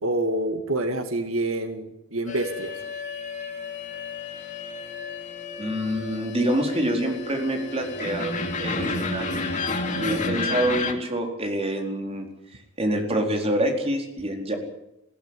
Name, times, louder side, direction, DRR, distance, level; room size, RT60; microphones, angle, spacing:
voice 1, 0.0-2.7, right 1 dB, 90° right, 7 dB, 2.1 m, -27 dB
sound 1, 2.3-10.9, left 3 dB, 40° left, 2.8 m, -31 dB
voice 2, 5.6-9.5 10.0-12.3 12.8-14.6, right 1 dB, 30° right, 3 dB, 4.5 m, -26 dB
21.0 x 15.5 x 9.8 m, 0.85 s
head